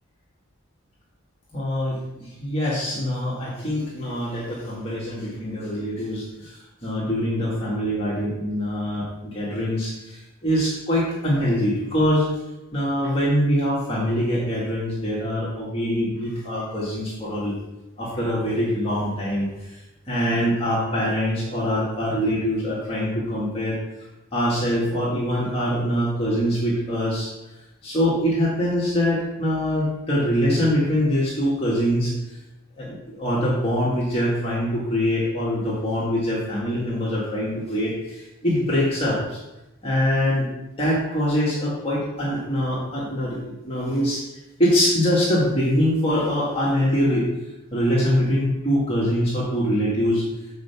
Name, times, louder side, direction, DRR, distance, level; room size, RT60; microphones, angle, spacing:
voice 1, 1.5-12.3 12.7-17.6 18.0-19.8 20.1-23.8 24.3-27.3 27.8-32.1 32.8-39.4 39.8-40.5 40.8-44.2 44.6-47.3 47.7-50.2, equal, 25° left, -7 dB, 1.8 m, -24 dB
6.6 x 4.7 x 6.9 m, 0.97 s
head